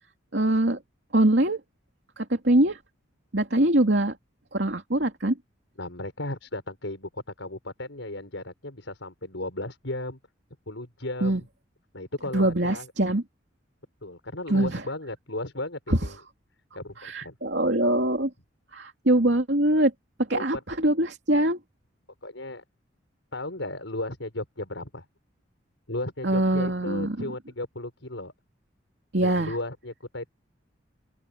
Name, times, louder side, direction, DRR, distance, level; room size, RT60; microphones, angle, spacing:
voice 1, 0.3-0.8 1.1-1.6 2.2-2.8 3.3-4.1 4.5-5.3 11.2-11.4 12.3-13.2 14.5-14.8 15.9-16.0 17.0-18.3 18.7-19.9 20.3-21.6 26.2-27.2 29.1-29.5, right 1 dB, 65° right, 2.9 m, -23 dB
voice 2, 5.8-10.2 10.7-11.5 11.9-12.9 14.0-16.2 16.7-17.4 20.3-20.6 22.2-22.6 23.3-25.1 25.9-28.3 29.2-30.3, left 2 dB, 85° left, 5.4 m, -35 dB
open air
head